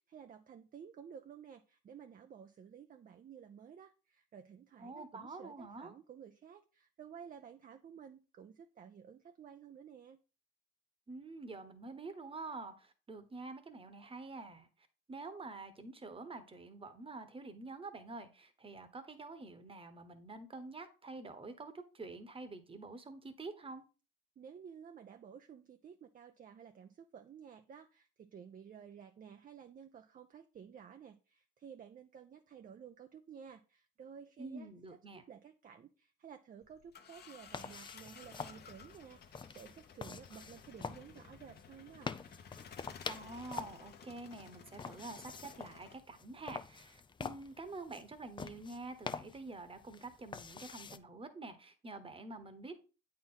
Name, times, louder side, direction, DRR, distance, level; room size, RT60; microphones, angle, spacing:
voice 1, 0.0-10.2 24.4-42.1, right 7 dB, 45° right, 7 dB, 0.6 m, -54 dB
voice 2, 4.8-5.9 11.1-14.7 15.1-23.8 34.4-35.2 43.1-52.8, right 3 dB, 25° right, 10 dB, 1.2 m, -47 dB
sound 1, 36.6-46.0, left 7 dB, 55° left, 1.0 m, -55 dB
sound 2, 37.5-51.0, left 5 dB, 25° left, 0.4 m, -47 dB
8.4 x 4.4 x 3.8 m, 0.34 s
cardioid pair, 90°, 20 cm